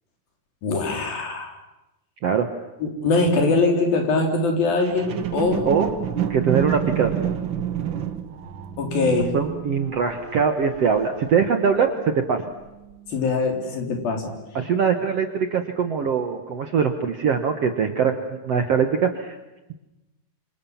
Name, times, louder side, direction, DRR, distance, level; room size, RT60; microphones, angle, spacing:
voice 1, 0.6-1.5 2.8-5.7 8.8-9.3 13.1-14.3, left 3 dB, 65° left, 3 dB, 5.4 m, -22 dB
sound 1, 4.8-12.3 12.8-12.9, right 9 dB, 80° right, 1.0 m, -29 dB
voice 2, 6.3-7.1 9.3-12.4 14.5-19.4, right 6 dB, 60° right, 6 dB, 1.8 m, -22 dB
27.0 x 27.0 x 7.3 m, 0.99 s
omnidirectional pair, 4.4 m